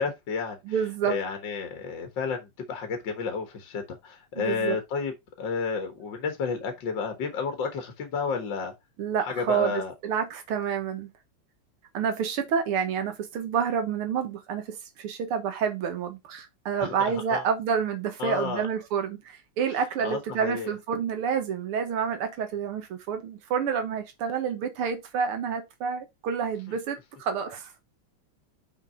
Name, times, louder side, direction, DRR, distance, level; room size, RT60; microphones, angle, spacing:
voice 1, 0.0-0.6 1.1-5.1 5.4-8.7 9.2-9.9 16.8-17.5 18.2-18.6 20.0-20.7, left 5 dB, 60° left, 2.0 m, -31 dB
voice 2, 0.7-1.1 4.4-4.8 9.0-11.1 11.9-27.7, right 7 dB, 90° right, 2.2 m, -29 dB
6.0 x 4.8 x 4.4 m
omnidirectional pair, 2.3 m